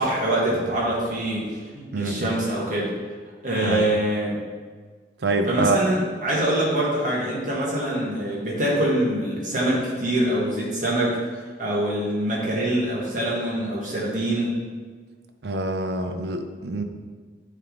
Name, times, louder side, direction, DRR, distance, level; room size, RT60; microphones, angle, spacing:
voice 1, 0.0-3.0 3.4-4.4 5.5-11.2 11.6-14.6, right 1 dB, 45° right, -5 dB, 1.7 m, -24 dB
voice 2, 1.9-2.3 3.6-3.9 5.2-5.8 15.4-16.8, right 2 dB, 70° right, 6 dB, 0.6 m, -25 dB
9.1 x 3.6 x 3.9 m, 1.5 s
head